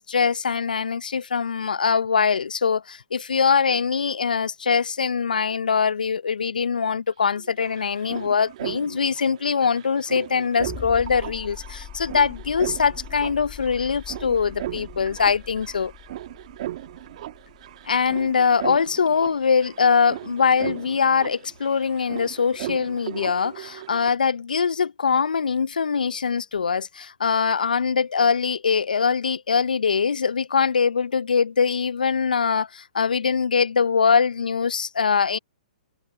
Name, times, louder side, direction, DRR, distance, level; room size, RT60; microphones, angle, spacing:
voice 1, 0.0-15.9 17.9-35.4, left 6 dB, 85° left, 0.6 m, -22 dB
sound 1, 7.1-7.2 7.3-24.1, right 14 dB, 55° right, 1.3 m, -38 dB
sound 2, 10.6-19.0 20.5-20.6, left 11 dB, 25° left, 2.4 m, -42 dB
hypercardioid pair, 125°, 4 cm